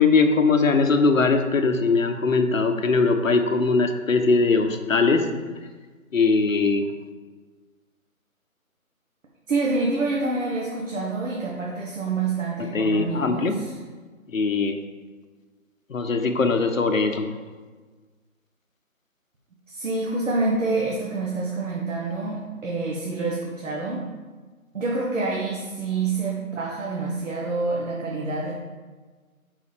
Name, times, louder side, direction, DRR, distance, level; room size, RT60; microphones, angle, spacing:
voice 1, 0.0-5.3 6.1-6.9 12.6-13.5 14.3-14.8 15.9-17.3, left 4 dB, 65° left, 6 dB, 0.9 m, -21 dB
voice 2, 9.5-13.8 19.7-24.1 24.7-28.5, right 3 dB, 60° right, -2 dB, 1.3 m, -27 dB
7.2 x 5.5 x 3.3 m, 1.4 s
figure-of-eight pair, 160°, 43 cm